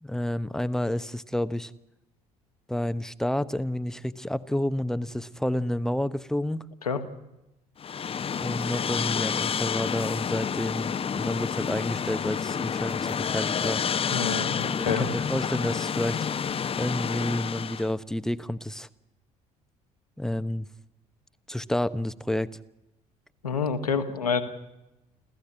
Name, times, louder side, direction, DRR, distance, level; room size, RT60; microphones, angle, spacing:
voice 1, 0.0-1.7 2.7-6.7 8.4-13.8 14.8-16.2 16.8-18.9 20.2-20.7 21.5-22.5, left 1 dB, 5° left, 14 dB, 1.0 m, -29 dB
sound 1, 7.8-17.9, left 7 dB, 30° left, 1.0 m, -29 dB
voice 2, 14.1-15.1 23.4-24.4, left 5 dB, 80° left, 5 dB, 1.8 m, -28 dB
29.5 x 14.5 x 8.7 m, 0.94 s
figure-of-eight pair, 55°, 19 cm